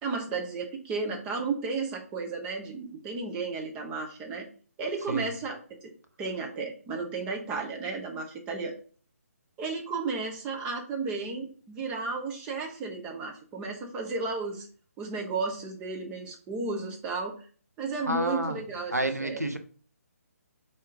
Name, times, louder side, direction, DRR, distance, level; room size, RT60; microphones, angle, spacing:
voice 1, 0.0-4.5 4.8-5.9 6.2-8.7 9.6-14.7 15.0-17.4 17.8-18.9 19.2-19.4, right 4 dB, 15° right, 1 dB, 0.5 m, -33 dB
voice 2, 18.1-18.6 18.9-19.6, right 1 dB, 85° right, 6 dB, 0.7 m, -29 dB
3.6 x 2.7 x 4.6 m, 0.42 s
figure-of-eight pair, 140°, 8 cm